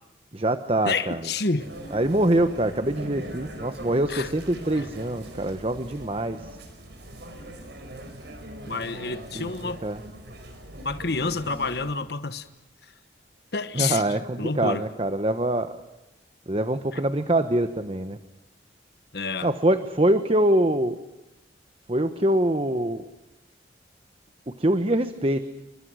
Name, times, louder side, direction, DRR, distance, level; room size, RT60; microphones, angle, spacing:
voice 1, 0.3-1.2 1.9-6.4 9.3-10.0 13.7-15.8 16.5-18.2 19.4-21.0 21.9-23.1 24.5-25.4, right 1 dB, 30° right, 9 dB, 1.0 m, -24 dB
voice 2, 0.8-1.7 4.1-4.3 4.8-4.9 8.7-9.8 10.8-12.5 12.8-12.9 13.5-14.8 16.9-17.0 19.1-19.5, left 4 dB, 55° left, 11 dB, 1.2 m, -29 dB
sound 1, 1.6-12.0, right 1 dB, 60° right, 4.8 m, -41 dB
29.5 x 25.0 x 6.3 m, 0.97 s
head